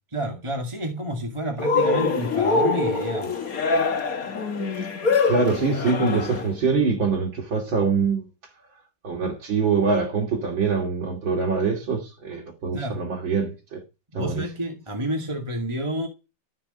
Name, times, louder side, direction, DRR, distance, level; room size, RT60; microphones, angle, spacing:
voice 1, 0.1-3.4 12.7-13.0 14.1-16.1, right 1 dB, 15° right, 2.1 m, -29 dB
Cheering, 1.6-6.5, left 4 dB, 50° left, 1.9 m, -24 dB
voice 2, 5.0-8.2 9.0-13.8 14.1-14.4, right 5 dB, 75° right, 3.5 m, -24 dB
15.0 x 6.1 x 9.9 m
omnidirectional pair, 2.1 m